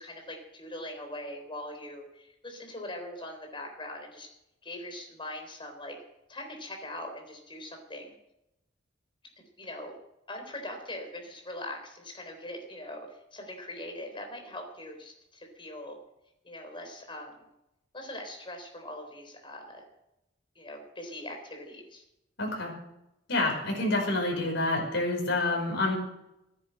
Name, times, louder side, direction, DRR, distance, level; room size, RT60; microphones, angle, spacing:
voice 1, 0.0-4.3 4.6-6.0 6.3-8.1 9.6-9.9 10.3-16.0 16.4-17.5 17.9-19.8 20.6-22.0, left 1 dB, 25° left, 3 dB, 3.8 m, -41 dB
voice 2, 22.4-22.7 23.3-26.0, left 2 dB, 70° left, 0 dB, 5.4 m, -28 dB
14.5 x 10.5 x 7.9 m, 0.86 s
head